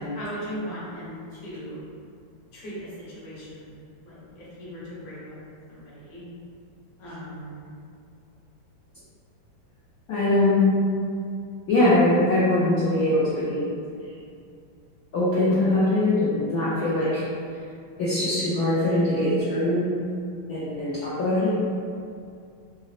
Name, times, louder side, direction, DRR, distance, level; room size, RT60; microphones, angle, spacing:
voice 1, 0.0-1.8 2.5-3.7 4.0-5.3 5.7-6.2 7.0-7.7, equal, 45° left, -10 dB, 0.6 m, -38 dB
voice 2, 10.1-10.8 11.7-13.7 15.1-17.2 18.0-19.9 20.5-21.5, left 1 dB, 70° left, -10 dB, 0.8 m, -22 dB
4.0 x 2.0 x 2.4 m, 2.4 s
omnidirectional pair, 2.2 m